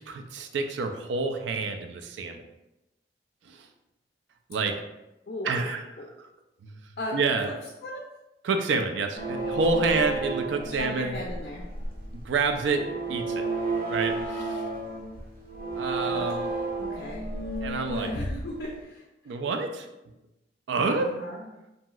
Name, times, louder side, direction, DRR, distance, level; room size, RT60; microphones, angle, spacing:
voice 1, 0.0-2.4 3.4-3.7 4.5-4.8 5.4-5.8 6.6-6.8 7.1-7.5 8.4-11.1 12.1-13.5 13.9-14.7 15.7-16.5 17.6-18.1 19.3-19.9 20.7-21.1, right 4 dB, 85° right, 6 dB, 0.3 m, -28 dB
sound 1, 9.2-18.7, right 2 dB, 55° right, 0.7 m, -32 dB
voice 2, 10.8-11.7 16.1-16.3 16.8-17.3 17.9-19.4 20.8-21.5, left 1 dB, 55° left, -2 dB, 0.4 m, -36 dB
2.9 x 2.6 x 2.3 m, 0.95 s
head